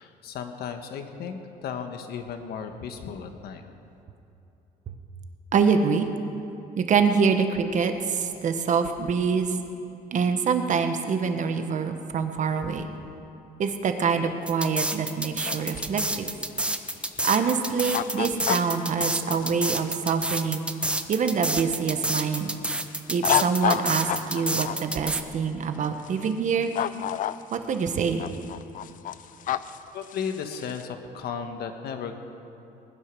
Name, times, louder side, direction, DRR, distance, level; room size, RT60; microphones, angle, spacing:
voice 1, 0.0-3.6 29.9-32.2, left 6 dB, 70° left, 6 dB, 1.5 m, -35 dB
voice 2, 5.5-6.1 6.8-9.6 10.1-12.9 13.6-16.3 17.2-20.7 21.1-22.5 23.1-26.7 27.5-28.2, right 6 dB, 45° right, 7 dB, 1.3 m, -25 dB
sound 1, 14.5-25.2, right 1 dB, 5° right, 0.8 m, -28 dB
sound 2, 15.5-21.5 21.9-24.8 25.8-26.3 26.6-27.8 28.1-30.8, left 11 dB, 50° left, 0.5 m, -30 dB
20.5 x 10.0 x 6.3 m, 2.8 s
cardioid pair, 110°, 17 cm